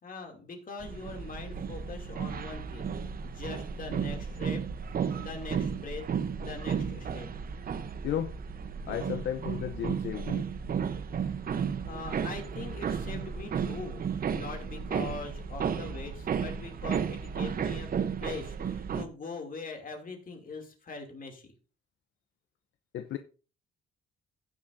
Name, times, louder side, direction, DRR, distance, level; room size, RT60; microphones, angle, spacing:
voice 1, 0.0-2.9 3.2-4.6 5.2-6.1 6.4-7.3 11.9-17.9 18.2-21.5, left 4 dB, 45° left, 2.7 m, -42 dB
sound 1, 0.8-19.1, right 7 dB, 45° right, 0.9 m, -33 dB
voice 2, 8.9-10.5 22.9-23.2, left 10 dB, 70° left, 0.7 m, -34 dB
16.0 x 6.4 x 2.6 m
cardioid pair, 90°, 20 cm